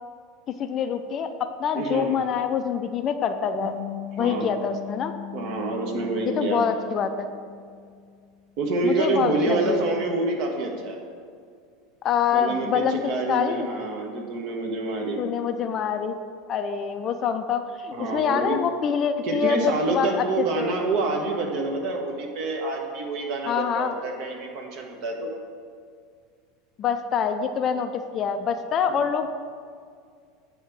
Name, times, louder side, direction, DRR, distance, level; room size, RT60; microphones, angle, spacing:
voice 1, 0.6-3.8 4.2-5.1 6.3-7.3 8.8-9.8 12.0-13.0 13.3-13.7 15.2-16.1 16.5-20.7 23.5-24.0 26.8-29.3, left 7 dB, 35° left, 8 dB, 0.4 m, -25 dB
voice 2, 1.7-2.1 4.2-4.5 5.3-6.6 8.6-11.0 12.3-15.2 17.9-18.6 19.2-25.3, right 3 dB, 50° right, 1 dB, 1.1 m, -27 dB
sound 1, 3.6-8.2, left 9 dB, 70° right, 1.3 m, -39 dB
8.1 x 3.5 x 6.2 m, 2.1 s
figure-of-eight pair, 75°, 0 cm